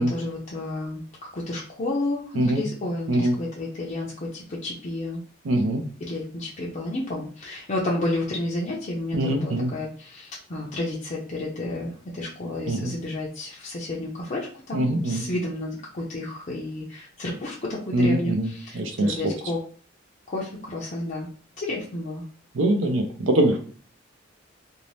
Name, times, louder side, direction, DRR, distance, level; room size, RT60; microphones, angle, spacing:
voice 1, 0.0-5.2 6.0-19.6 20.3-21.3 21.6-22.2, left 2 dB, 40° left, -4 dB, 0.5 m, -31 dB
voice 2, 5.4-5.8 9.1-9.7 12.7-12.9 14.7-15.3 17.9-19.2 22.5-23.6, right 1 dB, 80° right, 3 dB, 0.5 m, -23 dB
2.6 x 2.0 x 3.0 m, 0.43 s
head